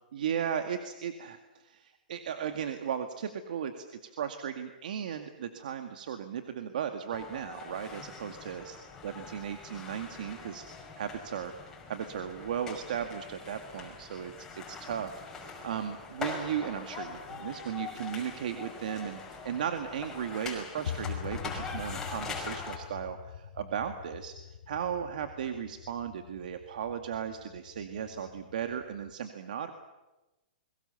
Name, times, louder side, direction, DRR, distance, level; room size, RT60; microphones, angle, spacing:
voice 1, 0.1-8.8 9.0-11.5 11.9-24.3 24.7-29.7, right 8 dB, 65° right, 6 dB, 2.1 m, -36 dB
sound 1, 7.1-22.8, left 4 dB, 10° left, 5.9 m, -43 dB
sound 2, 20.9-29.1, left 9 dB, 70° left, 2.7 m, -44 dB
30.0 x 22.5 x 7.0 m, 1.0 s
hypercardioid pair, 160°, 5 cm